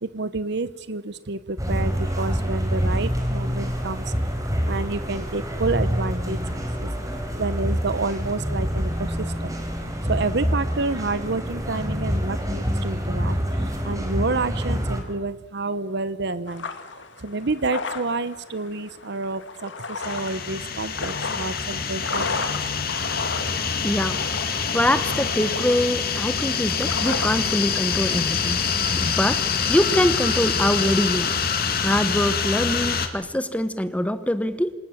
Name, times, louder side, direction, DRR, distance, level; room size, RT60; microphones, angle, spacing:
voice 1, 0.0-4.0 4.7-6.4 6.8-6.9 7.4-9.6 10.1-16.7 17.2-22.5, right 3 dB, 60° right, 14 dB, 1.0 m, -29 dB
sound 1, 1.6-15.0, equal, 20° right, 4.5 m, -26 dB
sound 2, 16.5-31.1, left 4 dB, 70° left, 2.2 m, -35 dB
sound 3, 20.0-33.1, left 6 dB, 55° left, 2.5 m, -25 dB
voice 2, 23.8-28.6 29.0-31.3 31.8-34.7, equal, 5° left, 12 dB, 1.1 m, -24 dB
28.0 x 26.5 x 7.3 m, 1.3 s
head